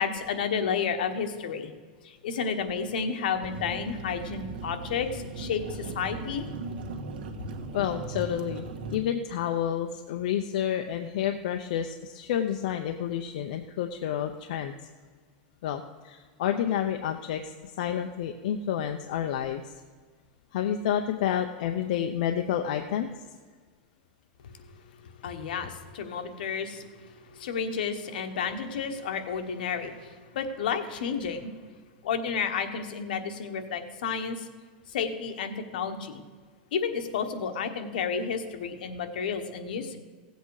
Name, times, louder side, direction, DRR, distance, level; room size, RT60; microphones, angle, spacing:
voice 1, 0.0-1.7 2.0-6.5 25.0-31.5 32.0-34.4 34.9-36.2 36.7-40.0, left 6 dB, 80° left, 6 dB, 1.3 m, -31 dB
sound 1, 3.4-9.0, right 3 dB, 90° right, 1.5 m, -38 dB
voice 2, 7.7-8.6 8.9-14.7 15.6-17.5 17.8-19.7 20.5-23.2, left 9 dB, 65° left, 5 dB, 0.7 m, -29 dB
16.0 x 7.9 x 4.8 m, 1.5 s
supercardioid pair, 165°, 5 cm